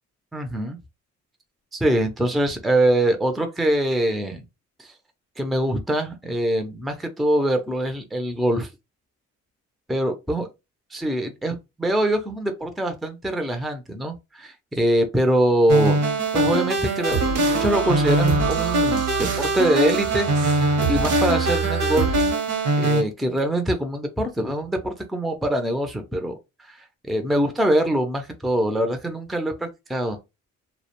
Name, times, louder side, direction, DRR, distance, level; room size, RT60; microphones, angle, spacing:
voice 1, 0.3-0.8 1.7-4.4 4.8-4.9 5.4-8.7 9.9-10.5 10.9-16.1 16.3-22.3 22.8-26.3 26.6-26.8 27.0-30.2, right 1 dB, ahead, 0.4 m, -24 dB
sound 1, 15.7-23.0, right 2 dB, 60° right, 0.9 m, -22 dB
sound 2, 17.1-22.3, right 4 dB, 85° right, 0.8 m, -28 dB
2.3 x 2.1 x 2.9 m
cardioid pair, 90°, 30 cm